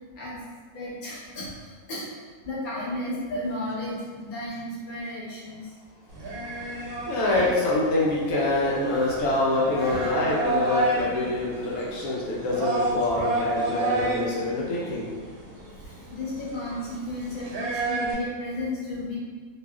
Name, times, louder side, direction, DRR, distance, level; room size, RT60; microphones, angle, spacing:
voice 1, 0.7-1.4 1.9-2.0 2.5-5.6 8.8-11.8 12.9-13.1 13.9-14.1 16.1-19.2, left 1 dB, 45° left, -8 dB, 0.8 m, -34 dB
sound 1, 6.1-18.1, right 2 dB, 85° right, 1.1 m, -31 dB
voice 2, 6.6-15.1, left 2 dB, 80° left, -5 dB, 1.0 m, -25 dB
2.6 x 2.3 x 2.2 m, 1.5 s
omnidirectional pair, 1.5 m